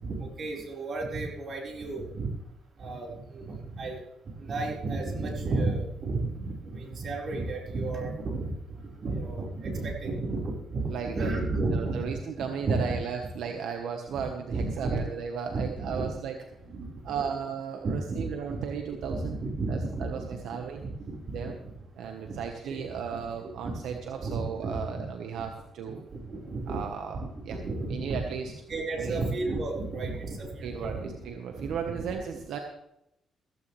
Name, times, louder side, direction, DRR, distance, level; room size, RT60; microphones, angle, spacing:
voice 1, 0.0-2.3 2.8-4.0 4.4-8.5 9.0-12.2 12.6-13.0 14.1-14.2 14.5-15.0 15.5-16.1 16.6-17.1 17.8-18.6 19.0-20.2 20.7-21.5 22.2-22.3 22.6-22.9 23.6-23.7 24.2-25.0 26.3-26.8 27.1-28.2 28.7-31.1 31.5-32.1, right 3 dB, 50° right, -1 dB, 4.7 m, -32 dB
voice 2, 10.9-11.3 11.7-16.3 17.0-19.4 19.7-20.8 21.3-21.6 22.0-26.1 26.7-27.6 27.9-28.5 29.0-29.2 30.6-32.6, right 7 dB, 80° right, 4 dB, 1.3 m, -35 dB
15.5 x 15.0 x 3.4 m, 0.85 s
cardioid pair, 90°, 0 cm